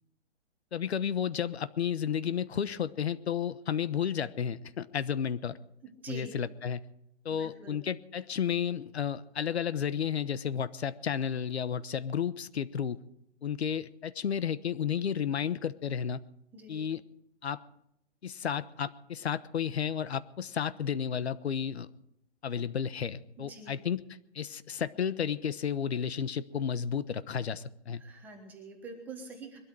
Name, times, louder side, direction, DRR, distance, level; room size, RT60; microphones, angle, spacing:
voice 1, 0.7-5.6 6.1-6.8 7.2-13.0 13.4-16.2 16.7-17.0 17.4-17.6 18.2-21.9 22.4-24.0 24.3-28.0, left 8 dB, 70° left, 14 dB, 1.1 m, -32 dB
voice 2, 7.3-7.8 16.5-16.8 23.4-23.8 28.0-29.6, right 4 dB, 5° right, 2 dB, 1.2 m, -45 dB
22.0 x 13.0 x 4.7 m, 0.76 s
hypercardioid pair, 175°, 34 cm